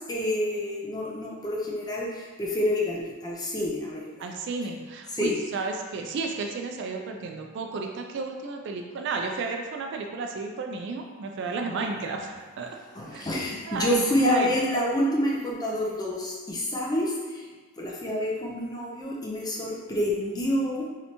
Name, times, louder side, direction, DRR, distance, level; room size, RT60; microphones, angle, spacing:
voice 1, 0.1-2.1 2.4-4.1 5.1-5.3 12.9-17.1 17.8-20.8, left 1 dB, 20° left, -4 dB, 0.5 m, -27 dB
voice 2, 4.2-12.8 13.1-13.3 13.7-14.6, right 3 dB, 55° right, 3 dB, 0.3 m, -32 dB
3.2 x 2.8 x 2.7 m, 1.4 s
head